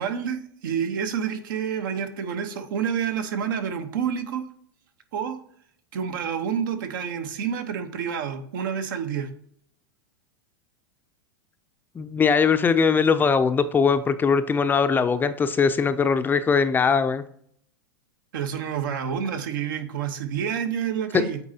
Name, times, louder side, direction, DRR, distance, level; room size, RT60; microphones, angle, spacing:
voice 1, 0.0-4.4 5.1-5.4 5.9-9.3 18.3-21.4, right 7 dB, 70° right, 8 dB, 1.0 m, -28 dB
voice 2, 12.0-17.2, left 5 dB, 15° left, 11 dB, 0.4 m, -21 dB
8.4 x 4.1 x 2.8 m, 0.65 s
hypercardioid pair, 110°, 11 cm